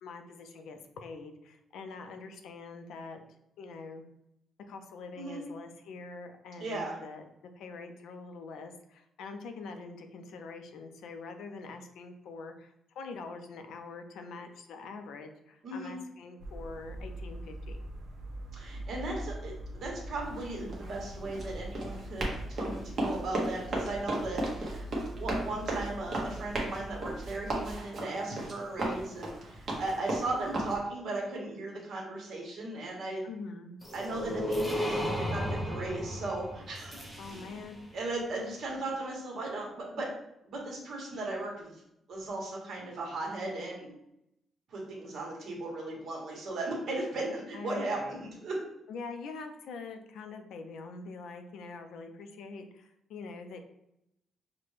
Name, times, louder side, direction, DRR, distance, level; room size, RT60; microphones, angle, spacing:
voice 1, 0.0-3.2 3.6-4.0 4.7-7.2 7.6-17.9 33.2-33.8 37.2-37.8 47.5-48.2 48.9-53.6, left 4 dB, 80° left, 6 dB, 0.5 m, -44 dB
voice 2, 6.6-6.9 15.6-15.9 18.5-24.9 25.2-33.2 33.9-37.4 37.9-40.1 40.4-41.7 42.1-43.9 44.7-48.6, right 2 dB, 50° right, -1 dB, 1.2 m, -37 dB
sound 1, 16.4-27.8, right 1 dB, 80° right, 0.7 m, -43 dB
Run, 20.2-30.7, right 1 dB, 35° right, 0.9 m, -35 dB
sound 2, 33.8-37.8, equal, 5° left, 0.6 m, -34 dB
5.9 x 2.2 x 3.2 m, 0.81 s
cardioid pair, 180°, 0 cm